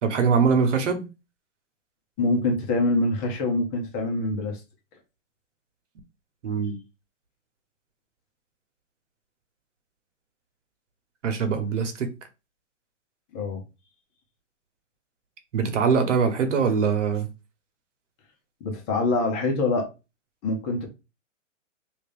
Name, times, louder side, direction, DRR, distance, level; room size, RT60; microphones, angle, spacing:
voice 1, 0.0-1.0 6.4-6.8 11.2-12.1 15.5-17.3, right 5 dB, 70° right, 1.1 m, -22 dB
voice 2, 2.2-4.6 13.3-13.6 18.6-19.9 20.4-20.9, left 2 dB, 30° left, 1.3 m, -25 dB
3.3 x 2.8 x 3.4 m
hypercardioid pair, 140°, 38 cm